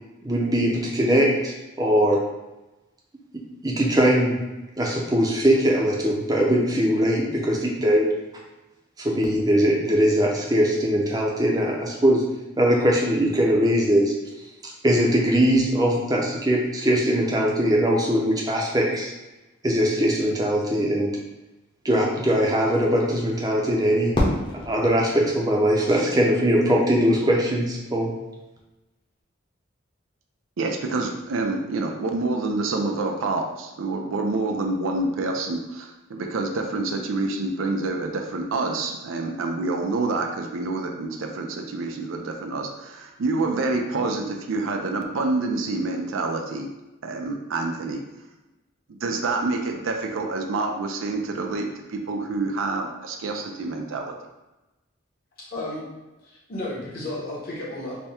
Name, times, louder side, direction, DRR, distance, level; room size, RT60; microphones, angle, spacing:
voice 1, 0.2-2.2 3.3-4.4 4.8-8.1 9.0-12.2 12.6-14.1 14.6-19.1 19.6-21.2 21.8-24.1 24.7-28.1, equal, 20° right, -1 dB, 0.5 m, -21 dB
Fireworks, 24.1-26.3, left 1 dB, 25° left, 0.7 m, -28 dB
voice 2, 30.6-46.7 47.0-48.0 48.9-54.1, right 3 dB, 85° right, 3 dB, 0.4 m, -27 dB
voice 3, 55.5-55.8 56.2-58.0, left 1 dB, 45° left, -6 dB, 1.1 m, -33 dB
3.4 x 2.2 x 4.2 m, 1.0 s
head